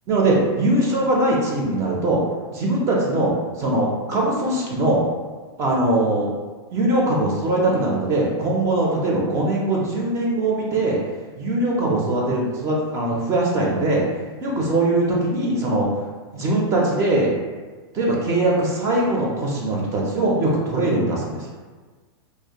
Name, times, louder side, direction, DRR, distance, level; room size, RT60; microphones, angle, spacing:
voice 1, 0.1-2.2 2.5-5.0 5.6-6.3 6.7-11.0 11.4-14.0 14.4-15.9 16.3-17.3 17.9-21.5, right 2 dB, 20° right, -3 dB, 0.3 m, -21 dB
2.4 x 2.0 x 2.8 m, 1.4 s
supercardioid pair, 155°, 14 cm